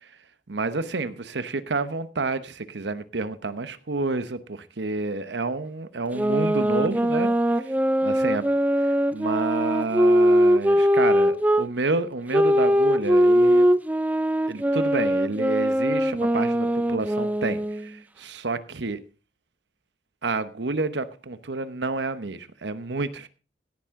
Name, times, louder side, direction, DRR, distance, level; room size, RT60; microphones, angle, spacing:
voice 1, 0.5-7.6 8.0-8.4 9.1-13.7 14.5-19.0 20.2-23.3, right 3 dB, 90° right, 13 dB, 1.0 m, -29 dB
sound 1, 6.1-11.7 12.3-17.9, equal, 10° right, 0.5 m, -21 dB
17.0 x 10.5 x 3.7 m, 0.34 s
head